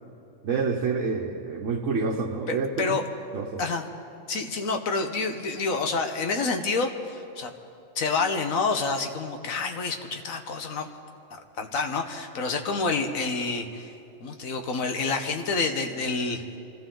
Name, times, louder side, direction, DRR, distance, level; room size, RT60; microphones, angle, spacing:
voice 1, 0.4-3.0 3.3-3.6, right 4 dB, 65° right, 0 dB, 1.3 m, -28 dB
voice 2, 2.5-3.0 3.6-3.9 4.3-7.5 7.9-10.9 11.6-16.6, left 4 dB, 80° left, 5 dB, 1.6 m, -28 dB
25.5 x 15.0 x 3.8 m, 2.7 s
omnidirectional pair, 1.4 m